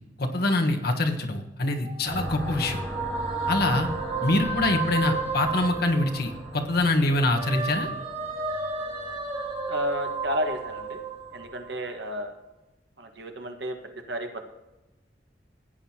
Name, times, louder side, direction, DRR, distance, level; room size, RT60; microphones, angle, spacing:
voice 1, 0.2-2.8 3.5-3.9 4.2-7.9, left 2 dB, 60° left, 4 dB, 1.3 m, -24 dB
sound 1, 1.7-6.6 7.0-11.8, right 4 dB, 35° right, 1.9 m, -33 dB
sound 2, 2.1-11.6, left 1 dB, 15° left, 2.6 m, -40 dB
voice 2, 9.7-11.0 11.3-12.4 13.0-13.8 14.1-14.5, equal, 70° right, 5 dB, 1.5 m, -31 dB
16.0 x 9.2 x 2.9 m, 1.0 s
head